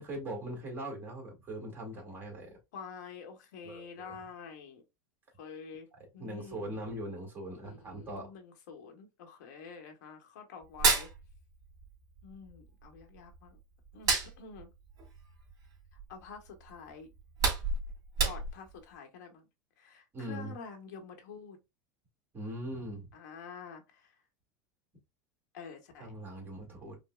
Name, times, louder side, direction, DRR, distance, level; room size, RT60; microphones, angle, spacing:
voice 1, 0.0-2.6 3.6-4.2 6.2-8.3 20.1-20.5 22.3-23.1 26.0-27.0, right 1 dB, 20° right, 1.6 m, -41 dB
voice 2, 2.7-4.8 5.4-5.9 6.1-6.7 7.6-11.1 12.2-13.6 13.9-14.7 16.1-17.1 18.2-19.5 19.8-21.6 23.1-24.1 25.5-26.1, left 6 dB, 80° left, 1.1 m, -48 dB
Hands, 10.6-11.9 12.2-13.5 13.9-16.2 16.6-16.8 17.1-18.8, right 4 dB, 40° right, 2.3 m, -30 dB
5.1 x 2.1 x 2.2 m
supercardioid pair, 140°, 9 cm